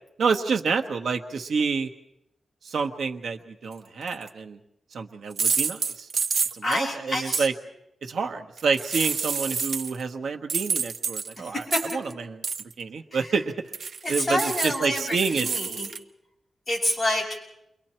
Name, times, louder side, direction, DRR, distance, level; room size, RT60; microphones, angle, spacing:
voice 1, 0.2-1.9 2.6-4.6 4.9-6.1 6.5-7.5 8.0-11.6 11.9-12.4 12.8-13.5 14.1-15.5, right 5 dB, 80° right, 4 dB, 1.2 m, -28 dB
sound 1, 4.1-4.3 5.3-6.8 7.3-7.4 8.6-10.0 10.5-12.1 12.4-12.7 13.7-16.0, right 5 dB, 65° right, 0.8 m, -28 dB
voice 2, 6.6-7.5 11.4-11.9 13.1-13.4 14.0-15.9 16.7-17.4, left 1 dB, 20° left, -3 dB, 6.1 m, -28 dB
29.0 x 23.5 x 4.4 m, 0.82 s
wide cardioid pair, 175°, 0 cm